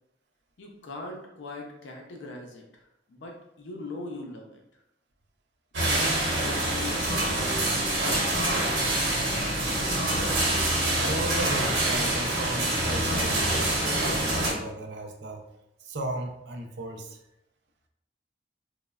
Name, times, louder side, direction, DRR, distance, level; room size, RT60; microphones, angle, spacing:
voice 1, 0.6-2.8 3.1-4.6 5.7-8.0, left 2 dB, 75° left, 1 dB, 0.5 m, -41 dB
sound 1, 5.7-14.5, right 1 dB, 90° right, 0.9 m, -26 dB
voice 2, 11.0-15.4 15.8-17.2, right 1 dB, 65° right, 3 dB, 0.4 m, -35 dB
3.0 x 2.1 x 2.2 m, 0.83 s
head